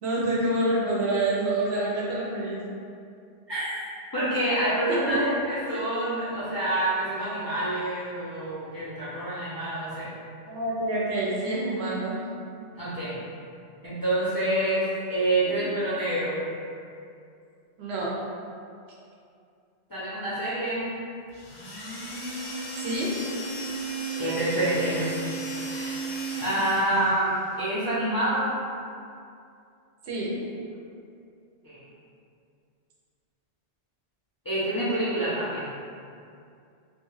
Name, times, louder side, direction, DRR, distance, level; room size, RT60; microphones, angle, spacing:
voice 1, 0.0-2.6 5.1-5.3 10.5-12.2 15.4-15.5 17.8-18.1 22.8-23.1 30.1-30.3, right 1 dB, 75° right, -5 dB, 0.8 m, -27 dB
voice 2, 4.1-10.1 12.7-13.1 13.8-16.4 19.9-20.9 24.2-25.1 25.7-26.0 26.4-28.5 31.6-31.8 34.4-35.7, right 1 dB, 30° left, -12 dB, 0.4 m, -27 dB
sound 1, 21.3-27.2, right 3 dB, 85° left, 0.9 m, -34 dB
2.2 x 2.2 x 3.1 m, 2.4 s
omnidirectional pair, 1.1 m